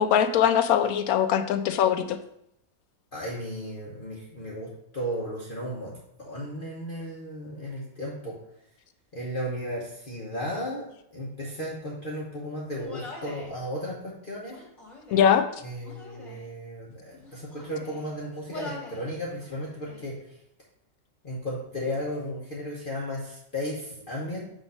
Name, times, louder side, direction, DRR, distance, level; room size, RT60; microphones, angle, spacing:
voice 1, 0.0-2.2 15.1-15.5, left 9 dB, 80° left, 9 dB, 1.0 m, -21 dB
voice 2, 3.1-8.4 9.1-14.6 15.6-20.2 21.2-24.4, equal, 40° left, -5 dB, 1.1 m, -35 dB
Human voice, 12.7-13.5 14.4-15.4 15.8-16.5 17.1-18.1 18.5-19.1 19.4-20.1, left 2 dB, 20° left, 1.7 m, -43 dB
6.3 x 3.1 x 5.5 m, 0.75 s
omnidirectional pair, 1.6 m